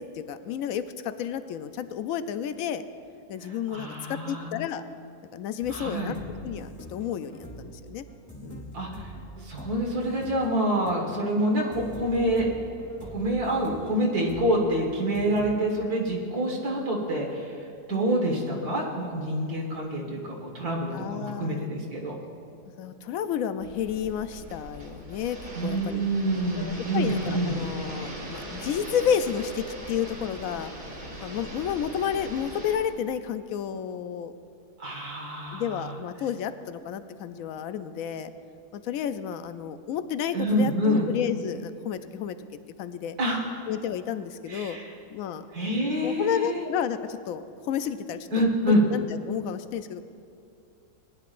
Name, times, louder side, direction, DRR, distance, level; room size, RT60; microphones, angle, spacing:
voice 1, 0.0-2.8 3.3-4.8 5.3-6.1 6.4-8.0 8.4-8.8 20.9-21.7 22.8-25.4 25.6-26.0 26.6-30.7 31.2-34.3 35.5-38.3 38.7-42.4 42.8-43.2 43.7-44.8 45.1-45.4 46.0-50.0, left 8 dB, 70° left, 11 dB, 0.9 m, -31 dB
voice 2, 3.4-4.5 5.7-6.1 8.7-9.1 9.4-12.5 13.0-17.6 17.9-22.2 25.6-27.6 34.8-36.0 40.3-41.1 43.2-43.6 44.5-44.9 45.5-46.6 48.3-48.8, right 1 dB, 80° right, -1 dB, 2.0 m, -27 dB
sound 1, 5.6-15.5, right 1 dB, 10° left, 1.6 m, -44 dB
sound 2, 23.6-32.8, right 1 dB, 60° right, 2.6 m, -40 dB
20.0 x 10.5 x 2.5 m, 2.6 s
omnidirectional pair, 1.6 m